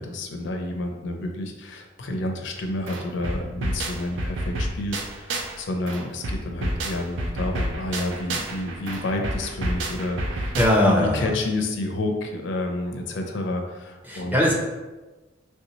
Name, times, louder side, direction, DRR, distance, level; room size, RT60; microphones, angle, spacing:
voice 1, 0.0-10.6 10.8-14.4, left 2 dB, 70° left, 4 dB, 0.4 m, -30 dB
sound 1, 2.6-2.7 2.9-5.6 5.9-11.0, right 1 dB, 75° right, 0.5 m, -29 dB
voice 2, 10.6-11.3 14.1-14.5, left 1 dB, 10° right, -2 dB, 0.5 m, -19 dB
3.3 x 2.7 x 2.9 m, 1.2 s
head